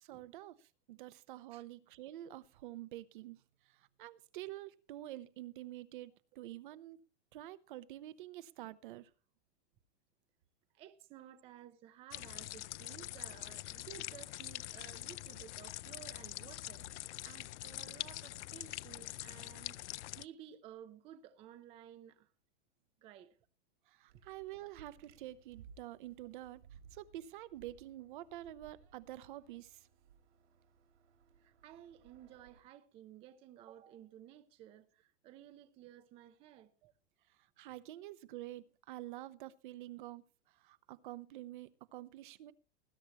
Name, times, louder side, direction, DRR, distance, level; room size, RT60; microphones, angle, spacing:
voice 1, 0.0-7.0 7.3-9.1 23.9-26.6 26.9-29.9 36.8-36.9 37.6-40.2 40.5-42.5, right 15 dB, 45° right, 0.9 m, -48 dB
voice 2, 10.7-19.8 20.2-22.3 23.0-23.4 31.4-36.7, right 11 dB, 15° right, 0.6 m, -55 dB
sound 1, 12.1-20.2, left 15 dB, 85° left, 0.5 m, -45 dB
sound 2, 24.1-32.6, right 7 dB, 85° right, 3.2 m, -62 dB
20.0 x 10.0 x 3.0 m
supercardioid pair, 165°, 34 cm